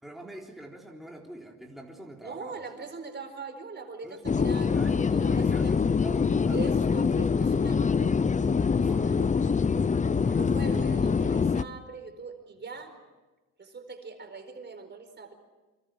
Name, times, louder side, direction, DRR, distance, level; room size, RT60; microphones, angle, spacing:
voice 1, 0.0-2.6 4.0-6.9 8.8-9.2 10.1-10.5, right 1 dB, ahead, -1 dB, 3.8 m, -45 dB
voice 2, 2.2-5.7 6.5-8.2 8.6-9.7 10.4-12.9 13.6-15.3, right 4 dB, 35° right, 6 dB, 4.5 m, -41 dB
sound 1, 4.3-11.6, left 5 dB, 25° left, 0.7 m, -24 dB
27.5 x 25.5 x 6.2 m, 1.2 s
cardioid pair, 90°, 30 cm